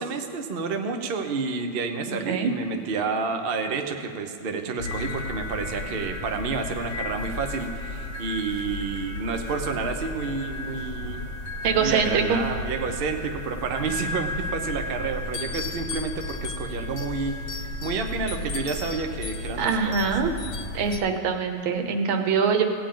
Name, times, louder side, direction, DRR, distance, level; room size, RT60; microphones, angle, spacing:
voice 1, 0.0-11.2 11.7-17.4 17.8-19.9, right 4 dB, 60° right, 5 dB, 0.5 m, -30 dB
voice 2, 2.1-2.5 11.6-12.4 19.6-20.3 20.7-22.6, right 6 dB, 85° right, 5 dB, 1.7 m, -23 dB
sound 1, 4.8-21.0, left 2 dB, 50° left, 1.1 m, -33 dB
17.0 x 8.7 x 3.8 m, 2.6 s
omnidirectional pair, 2.1 m